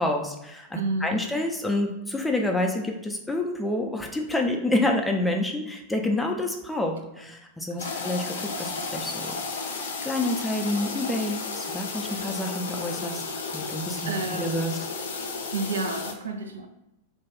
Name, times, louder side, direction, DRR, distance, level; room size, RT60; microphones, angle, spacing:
voice 1, 0.0-13.2 13.5-14.1 14.4-14.7, left 1 dB, 5° left, 2 dB, 0.5 m, -28 dB
voice 2, 0.7-1.3 7.2-7.3 7.8-8.1 14.1-14.8 15.5-16.7, right 3 dB, 70° right, 5 dB, 0.4 m, -31 dB
sound 1, 7.8-16.1, left 4 dB, 60° left, 0.4 m, -33 dB
2.7 x 2.3 x 3.4 m, 0.91 s
figure-of-eight pair, 90°, 0 cm